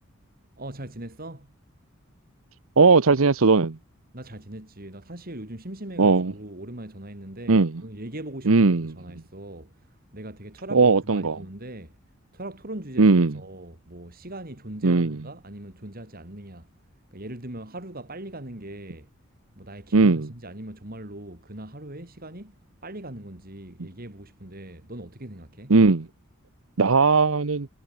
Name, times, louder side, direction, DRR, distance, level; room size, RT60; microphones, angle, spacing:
voice 1, 0.6-1.6 4.1-12.0 12.3-16.7 17.1-19.1 19.6-22.6 22.8-25.8, right 1 dB, 45° right, 3.9 m, -40 dB
voice 2, 2.8-3.8 6.0-6.3 7.5-7.7 8.5-8.9 10.7-11.4 13.0-13.3 14.8-15.2 19.9-20.3 25.7-26.1 26.8-27.7, right 4 dB, 80° right, 0.9 m, -18 dB
head